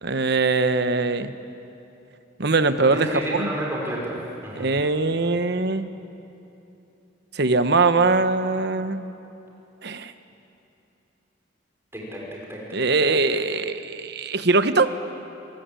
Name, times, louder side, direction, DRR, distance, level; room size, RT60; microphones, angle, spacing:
voice 1, 0.0-1.3 2.4-3.5 4.6-5.9 7.3-9.1 9.8-10.1 12.7-14.9, right 3 dB, 55° right, 11 dB, 1.1 m, -22 dB
voice 2, 2.8-4.8 11.9-13.0 13.3-13.4, right 1 dB, 15° right, -3 dB, 5.4 m, -31 dB
26.5 x 20.0 x 9.1 m, 2.8 s
head